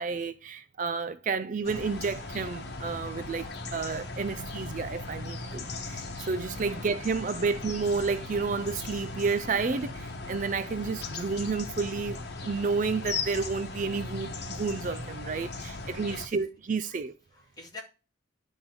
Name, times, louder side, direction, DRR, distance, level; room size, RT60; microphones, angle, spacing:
voice 1, 0.0-17.1, right 4 dB, 40° right, 0.4 m, -31 dB
sound 1, 1.6-16.3, left 3 dB, 55° left, 1.2 m, -38 dB
voice 2, 6.5-7.5 15.7-16.4 16.8-17.0 17.3-17.8, left 2 dB, 20° left, 2.2 m, -49 dB
10.5 x 3.6 x 5.9 m
head